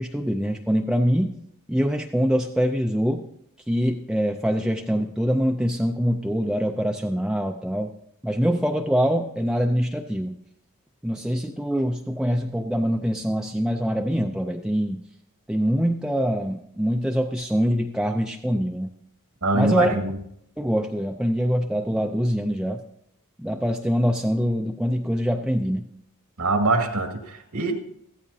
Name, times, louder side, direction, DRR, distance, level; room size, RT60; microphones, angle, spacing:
voice 1, 0.0-1.4 1.7-3.3 3.7-7.9 8.2-10.4 11.0-15.0 15.5-18.9 19.5-20.0 20.6-22.8 23.4-25.9, equal, 5° right, 3 dB, 0.4 m, -24 dB
voice 2, 19.4-20.2 26.4-27.8, right 2 dB, 85° right, 3 dB, 2.0 m, -23 dB
15.0 x 14.0 x 2.7 m, 0.74 s
head